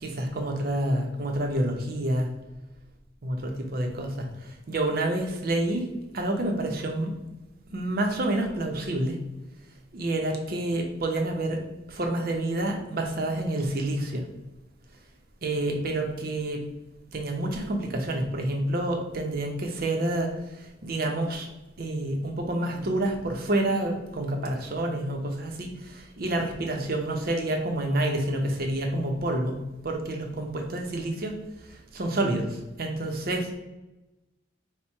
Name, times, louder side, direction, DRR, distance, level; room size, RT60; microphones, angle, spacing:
voice 1, 0.0-2.3 3.2-4.3 4.7-5.9 6.1-7.1 7.7-9.2 9.9-11.6 11.9-14.2 15.4-16.7 17.1-20.3 20.8-21.5 21.8-29.6 29.8-31.4 31.9-33.5, right 1 dB, 50° right, 2 dB, 0.7 m, -28 dB
4.3 x 2.2 x 4.5 m, 1.0 s
head